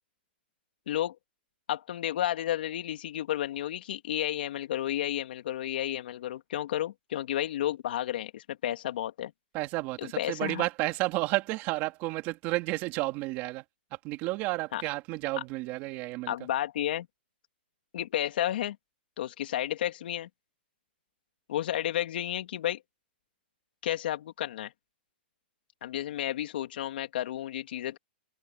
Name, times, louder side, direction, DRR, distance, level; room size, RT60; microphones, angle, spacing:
voice 1, 1.7-9.3 10.2-10.6 14.7-14.8 16.3-17.1 17.9-18.8 19.2-20.3 21.5-22.8 23.8-24.7 25.8-28.0, left 12 dB, 65° left, 2.9 m, -32 dB
voice 2, 9.5-13.6 14.0-16.3, right 21 dB, 35° right, 2.6 m, -31 dB
open air
hypercardioid pair, 150°, 6 cm